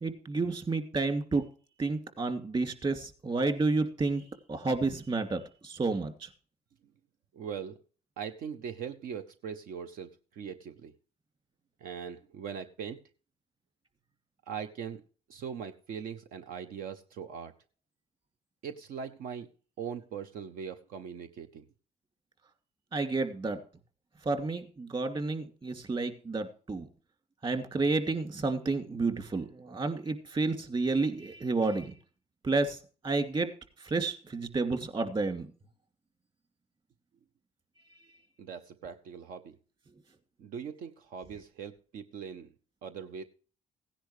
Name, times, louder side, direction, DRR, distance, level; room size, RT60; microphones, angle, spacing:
voice 1, 0.0-1.4 1.8-4.2 4.5-6.3 22.9-23.6 24.2-26.9 27.4-31.9 32.4-32.8 33.0-33.5 33.8-35.5, right 3 dB, 35° right, 7 dB, 2.5 m, -30 dB
voice 2, 7.3-7.8 8.2-10.9 11.8-13.0 14.5-15.0 15.3-17.5 18.6-19.5 19.8-21.6 38.4-39.6 40.4-42.5 42.8-43.2, right 7 dB, 80° right, 8 dB, 0.8 m, -40 dB
16.5 x 10.0 x 3.2 m, 0.39 s
cardioid pair, 85°, 14 cm